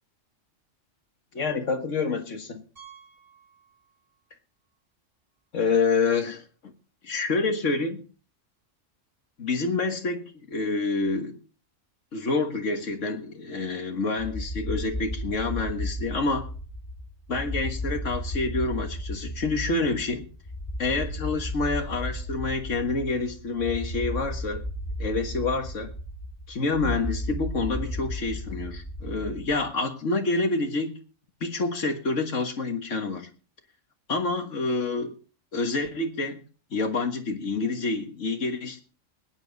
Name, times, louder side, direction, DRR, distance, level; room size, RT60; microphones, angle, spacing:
voice 1, 1.3-2.6 5.5-6.7 7.1-8.0 9.4-11.4 12.1-16.5 17.3-20.3 20.8-24.6 25.0-25.9 26.5-31.0 31.4-33.3 34.1-35.2 35.5-36.4 36.7-38.8, left 3 dB, 70° left, 1.9 m, -28 dB
Piano, 2.8-4.4 4.6-4.8 5.4-5.5 5.7-5.8 7.9-8.0, right 8 dB, 65° right, 6.2 m, -53 dB
sound 1, 14.2-29.7, left 1 dB, 30° left, 2.5 m, -34 dB
20.5 x 9.6 x 4.0 m
omnidirectional pair, 1.3 m